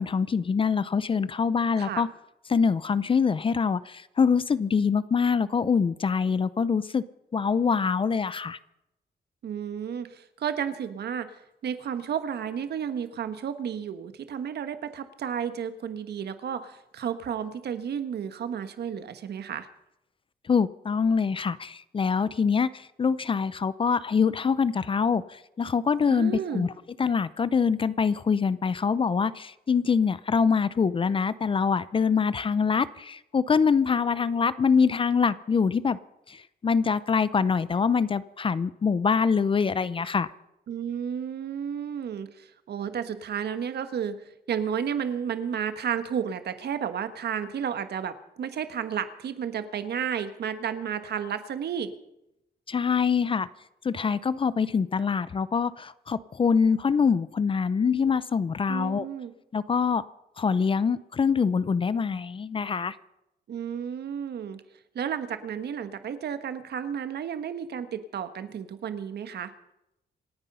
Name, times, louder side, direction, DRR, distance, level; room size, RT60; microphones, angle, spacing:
voice 1, 0.0-2.1 2.5-7.0 7.3-8.6 20.5-26.7 27.0-36.0 36.3-40.3 52.7-53.5 53.8-59.1 59.5-60.0 60.4-62.9, left 5 dB, 30° left, 17 dB, 0.5 m, -24 dB
voice 2, 9.4-11.3 11.6-19.7 26.1-26.7 40.7-44.2 44.5-51.9 58.7-59.3 63.5-64.6 64.9-69.5, right 8 dB, 70° right, 10 dB, 1.4 m, -32 dB
27.0 x 9.6 x 5.6 m, 0.85 s
wide cardioid pair, 145°, 18 cm